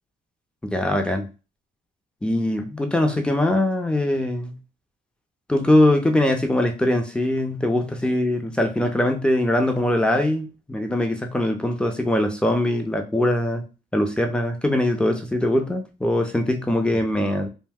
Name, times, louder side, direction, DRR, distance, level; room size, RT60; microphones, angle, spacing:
voice 1, 0.6-1.3 2.2-4.5 5.5-13.6 13.9-17.5, left 1 dB, 5° left, 5 dB, 0.5 m, -22 dB
2.6 x 2.1 x 3.5 m, 0.32 s
cardioid pair, 90°, 20 cm